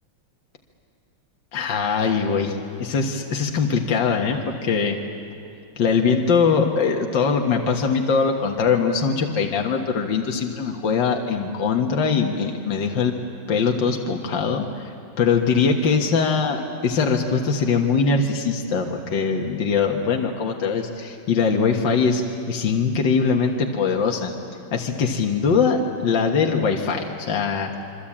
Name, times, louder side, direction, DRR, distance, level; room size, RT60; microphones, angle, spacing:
voice 1, 1.5-5.0 5.8-13.1 13.5-14.9 15.2-22.2 22.5-24.3 24.7-27.7, left 5 dB, 65° left, 1 dB, 2.2 m, -22 dB
26.5 x 24.5 x 8.7 m, 2.6 s
omnidirectional pair, 2.2 m